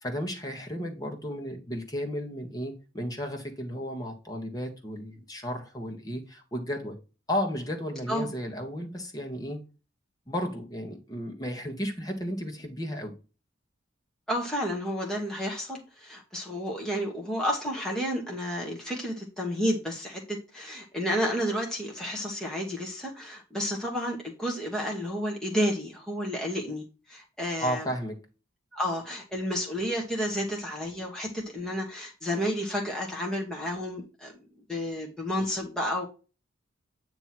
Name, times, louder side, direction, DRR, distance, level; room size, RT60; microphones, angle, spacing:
voice 1, 0.0-7.0 7.3-9.6 10.3-13.1 27.6-28.2, equal, 20° left, 1.5 m, -33 dB
voice 2, 14.3-27.9 28.7-34.3 34.7-36.1, equal, 5° left, 1.3 m, -31 dB
8.8 x 3.1 x 5.9 m
head